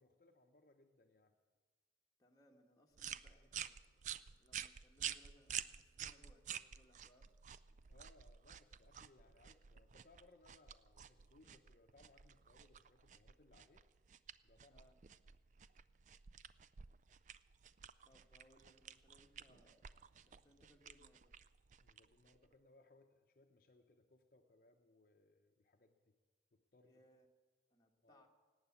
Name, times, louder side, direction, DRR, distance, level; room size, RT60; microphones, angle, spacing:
voice 1, 0.0-1.3 3.8-4.2 7.9-13.8 14.4-14.9 21.8-26.1 26.5-27.0 28.0-28.3, left 2 dB, 50° left, 4 dB, 0.8 m, -68 dB
voice 2, 2.2-3.8 4.0-7.5 14.7-14.9 18.0-21.4 26.8-27.3 27.7-28.3, equal, 20° left, 0 dB, 1.3 m, -70 dB
sound 1, 3.0-22.5, right 9 dB, 45° right, 0.4 m, -51 dB
18.5 x 8.9 x 7.1 m, 1.4 s
head